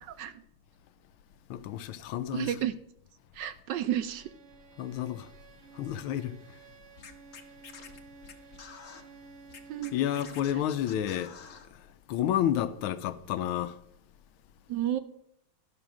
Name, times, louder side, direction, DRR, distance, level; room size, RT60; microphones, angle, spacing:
voice 1, 0.0-0.3 2.3-2.7 3.3-4.3 9.7-9.9 14.7-15.0, right 11 dB, 75° right, 1.0 m, -31 dB
voice 2, 1.5-2.5 4.8-5.3 5.7-6.4 9.9-11.3 11.7-11.8 12.1-13.8, left 11 dB, 85° left, 1.5 m, -30 dB
Bowed string instrument, 3.9-10.8, right 5 dB, 55° right, 0.8 m, -53 dB
Scratching (performance technique), 7.0-9.0 9.5-11.7, left 6 dB, 50° left, 1.0 m, -48 dB
13.0 x 6.0 x 6.0 m
omnidirectional pair, 2.3 m